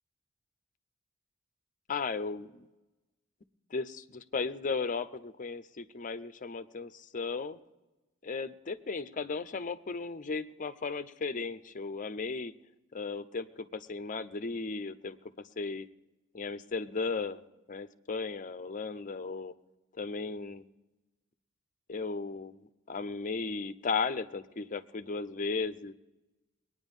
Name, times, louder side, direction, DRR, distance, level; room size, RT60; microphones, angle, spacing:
voice 1, 1.9-2.7 3.7-7.6 8.2-12.5 12.9-15.2 15.6-15.9 16.3-17.4 17.7-19.5 20.0-20.7 21.9-22.6 22.9-25.9, left 4 dB, 40° left, 12 dB, 0.6 m, -35 dB
21.5 x 9.6 x 5.4 m, 1.1 s
head